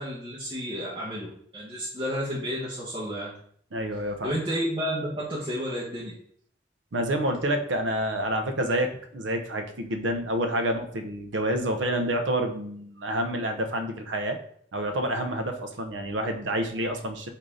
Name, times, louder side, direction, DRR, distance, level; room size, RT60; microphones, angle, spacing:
voice 1, 0.0-3.3 4.2-6.1, equal, 25° right, -9 dB, 1.1 m, -31 dB
voice 2, 3.7-4.3 6.9-14.4 14.7-17.3, right 1 dB, 85° right, 6 dB, 0.7 m, -28 dB
3.9 x 2.7 x 4.8 m, 0.62 s
head